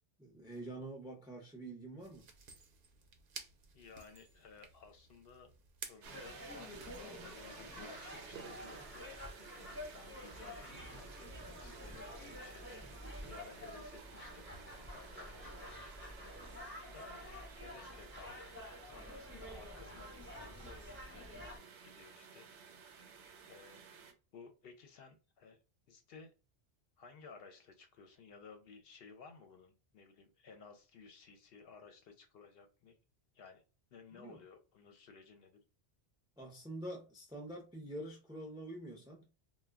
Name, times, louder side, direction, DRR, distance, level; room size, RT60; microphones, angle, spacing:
voice 1, 0.2-2.3 34.1-34.4 36.4-39.3, right 1 dB, 5° right, 0.3 m, -46 dB
sound 1, 2.0-7.1, right 5 dB, 60° right, 0.7 m, -54 dB
voice 2, 3.7-5.5 5.9-12.9 13.3-14.5 14.9-16.4 16.9-18.5 18.8-22.5 23.5-23.8 24.3-25.6 25.9-26.3 27.0-33.0 33.3-33.6 33.9-35.6, left 5 dB, 65° left, 0.7 m, -57 dB
sound 2, 6.0-24.1, right 6 dB, 85° right, 0.9 m, -55 dB
sound 3, 6.1-21.6, left 1 dB, 10° left, 0.8 m, -49 dB
2.2 x 2.1 x 3.3 m
omnidirectional pair, 1.2 m